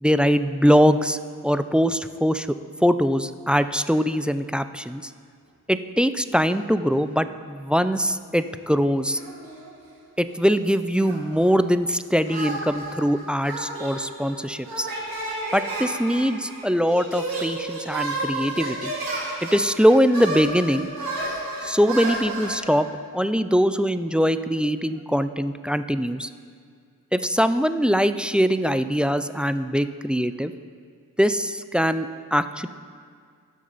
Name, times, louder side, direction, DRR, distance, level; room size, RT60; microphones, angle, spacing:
voice 1, 0.0-1.2 1.4-2.6 2.8-5.1 5.7-9.2 10.2-14.9 15.5-18.9 19.4-20.9 21.6-22.9 23.1-26.3 27.1-30.5 31.2-32.7, equal, 5° right, 11 dB, 0.3 m, -22 dB
sound 1, 9.1-10.0 10.3-11.6 12.3-22.6, right 2 dB, 85° right, 2.2 m, -32 dB
17.0 x 6.4 x 4.0 m, 2.1 s
cardioid pair, 60°, 35 cm